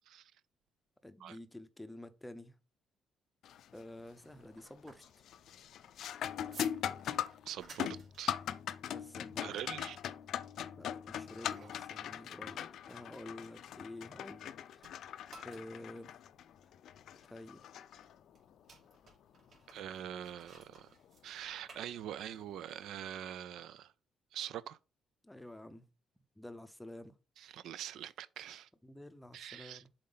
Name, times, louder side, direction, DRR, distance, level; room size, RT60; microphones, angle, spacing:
voice 1, 1.0-2.6 3.7-5.3 8.9-9.5 10.8-14.9 15.4-16.1 17.2-17.6 25.2-25.9 26.4-27.2 28.8-29.9, left 1 dB, 5° left, 0.6 m, -50 dB
sound 1, 3.4-3.8 4.2-4.7 5.0-18.5 21.0-21.1 22.0-22.2, left 10 dB, 65° left, 0.4 m, -41 dB
sound 2, 4.0-14.5 14.8-22.5, right 4 dB, 50° right, 2.9 m, -59 dB
voice 2, 7.5-8.4 9.4-10.0 19.7-20.9 21.2-23.9 24.3-24.8 27.4-28.7 29.3-29.8, right 10 dB, 75° right, 0.4 m, -44 dB
7.5 x 4.3 x 3.9 m
cardioid pair, 140°, 0 cm